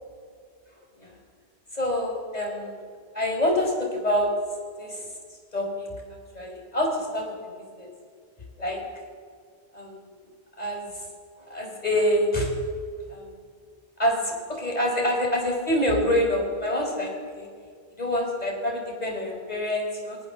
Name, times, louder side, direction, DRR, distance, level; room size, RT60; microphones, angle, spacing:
voice 1, 1.7-2.8 3.1-4.3 4.8-5.1 5.5-6.0 6.3-7.5 7.8-7.9 8.6-8.8 9.7-10.1 10.6-11.0 11.5-12.5 13.1-13.3 14.0-17.5 18.0-20.2, left 1 dB, 35° left, 1 dB, 4.8 m, -26 dB
27.5 x 21.5 x 7.1 m, 2.1 s
omnidirectional pair, 1.1 m